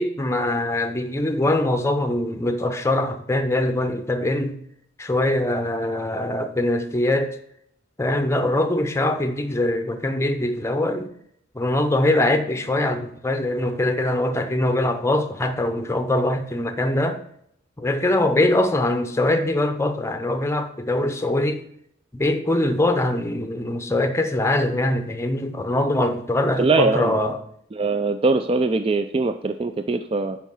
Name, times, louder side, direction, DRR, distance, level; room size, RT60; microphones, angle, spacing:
voice 1, 0.0-4.6 5.0-7.4 8.0-11.1 11.5-17.2 17.8-21.6 22.1-27.4, left 1 dB, 15° left, 0.7 m, -22 dB
voice 2, 26.6-27.1 27.7-30.4, right 3 dB, 30° right, 0.4 m, -22 dB
9.5 x 4.6 x 5.5 m
head